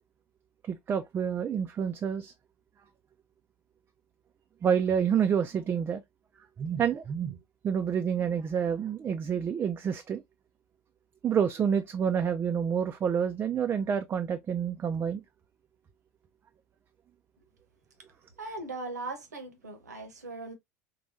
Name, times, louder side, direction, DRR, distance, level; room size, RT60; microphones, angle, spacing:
voice 1, 0.7-2.3 4.6-6.0 6.6-7.4 7.6-10.2 11.2-15.2, right 7 dB, 25° right, 0.3 m, -28 dB
voice 2, 18.4-20.5, right 3 dB, 80° right, 0.9 m, -39 dB
4.1 x 2.2 x 2.7 m
figure-of-eight pair, 75°, 9 cm